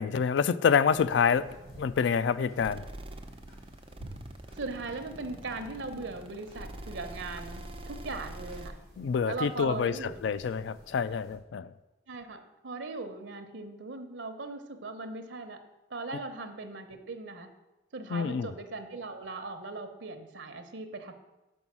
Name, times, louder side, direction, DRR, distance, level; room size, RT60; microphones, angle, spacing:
voice 1, 0.0-1.5 1.7-2.8 9.0-11.7 18.1-18.5, left 6 dB, 75° left, 15 dB, 0.3 m, -27 dB
sound 1, 0.9-11.4, right 1 dB, 50° left, 2.9 m, -52 dB
sound 2, 2.6-8.7, right 1 dB, 30° right, 0.6 m, -43 dB
voice 2, 4.6-8.8 9.3-10.1 12.1-15.6 15.9-17.5 17.9-21.1, right 3 dB, 90° right, 7 dB, 0.8 m, -39 dB
6.1 x 5.4 x 6.0 m, 1.0 s
head